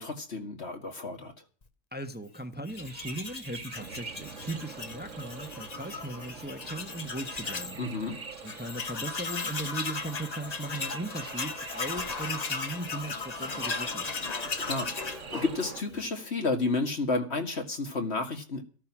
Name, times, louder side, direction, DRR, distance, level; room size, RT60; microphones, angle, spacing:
voice 1, 0.0-1.4 7.8-8.2 14.6-18.6, left 3 dB, 55° left, 2.4 m, -31 dB
voice 2, 1.9-7.8 8.4-14.3, right 1 dB, 10° right, 1.2 m, -38 dB
Tools, 2.7-7.8 8.1-8.2 8.5-16.1, left 4 dB, 35° left, 1.1 m, -36 dB
sound 1, 2.7-15.7, right 4 dB, 35° right, 1.1 m, -49 dB
sound 2, 3.7-15.8, right 5 dB, 70° right, 1.9 m, -47 dB
13.5 x 13.0 x 6.1 m
omnidirectional pair, 1.3 m